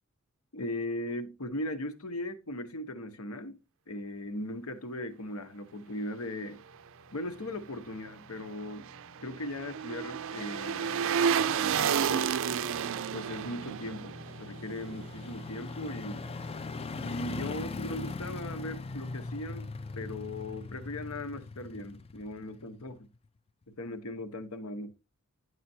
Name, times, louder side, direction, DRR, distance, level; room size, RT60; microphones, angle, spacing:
voice 1, 0.5-6.6 7.1-8.9 9.2-11.3 11.5-12.3 13.0-16.3 17.0-19.7 19.9-23.1 23.7-24.9, left 1 dB, 75° left, 1.1 m, -38 dB
sound 1, 6.7-23.3 23.6-23.7, left 3 dB, 25° left, 0.4 m, -42 dB
sound 2, 8.4-15.6 16.0-16.1, right 7 dB, 65° right, 0.4 m, -31 dB
9.9 x 6.6 x 2.8 m
head